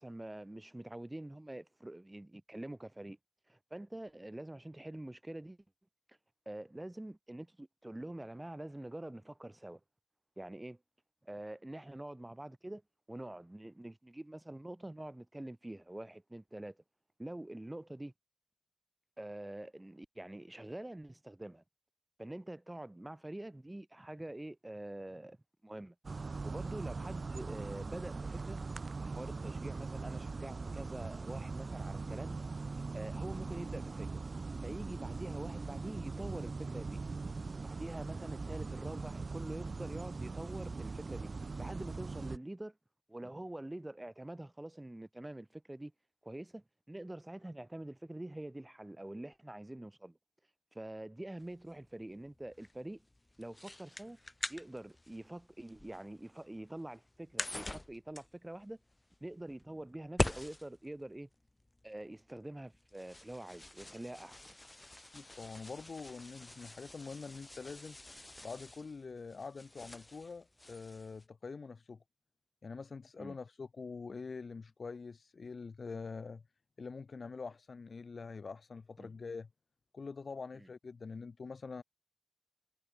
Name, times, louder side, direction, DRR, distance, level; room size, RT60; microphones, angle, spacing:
voice 1, 0.0-3.2 3.5-5.6 6.1-6.2 6.5-9.8 10.4-10.8 11.2-12.8 13.1-16.8 17.2-18.1 19.2-21.6 22.2-25.4 25.6-25.9 26.3-28.6 29.0-32.4 32.9-34.2 34.6-37.0 37.6-41.3 41.6-42.8 43.1-45.9 46.2-50.2 50.7-53.0 53.4-54.2 54.5-58.8 59.2-61.3 61.8-64.4 73.2-73.4 79.0-79.1 80.5-80.7, right 1 dB, 15° right, 6.3 m, -45 dB
sound 1, 26.0-42.4, right 4 dB, 50° right, 1.3 m, -41 dB
sound 2, 51.4-71.3, left 1 dB, 20° left, 1.9 m, -45 dB
voice 2, 65.1-68.0 68.4-72.0 72.6-76.4 76.8-79.5 79.9-81.8, left 4 dB, 60° left, 7.1 m, -45 dB
wide cardioid pair, 115°, 0 cm